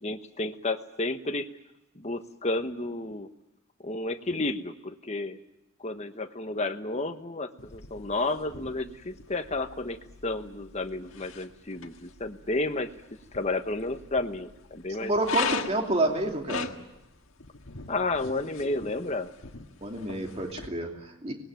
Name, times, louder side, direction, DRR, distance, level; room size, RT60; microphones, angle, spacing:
voice 1, 0.0-1.5 1.9-3.3 3.8-5.4 5.8-12.9 13.3-15.1 17.9-19.3, left 2 dB, 30° left, 7 dB, 1.2 m, -31 dB
sound 1, 7.6-20.7, left 6 dB, 70° left, 1.7 m, -40 dB
voice 2, 15.0-16.8 19.8-21.3, right 2 dB, 30° right, 2 dB, 2.7 m, -29 dB
25.0 x 20.0 x 9.1 m, 0.92 s
head